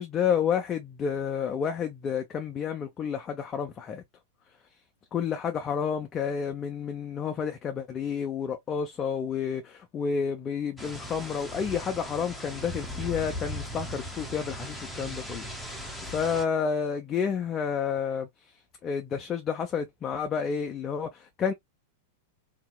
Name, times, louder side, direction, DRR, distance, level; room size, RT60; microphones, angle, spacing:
voice 1, 0.0-4.0 5.1-18.3 18.8-21.5, left 7 dB, 30° left, 0.5 m, -30 dB
sound 1, 10.8-16.4, equal, ahead, 0.9 m, -38 dB
2.8 x 2.8 x 2.3 m
hypercardioid pair, 110°, 0 cm